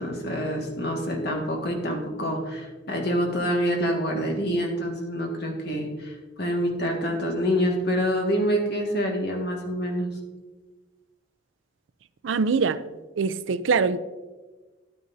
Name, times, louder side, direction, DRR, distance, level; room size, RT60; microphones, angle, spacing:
voice 1, 0.0-10.1, equal, 60° left, 1 dB, 1.8 m, -26 dB
voice 2, 12.2-12.8 13.2-14.0, right 5 dB, 85° right, 14 dB, 0.4 m, -23 dB
11.0 x 9.5 x 2.7 m, 1.2 s
head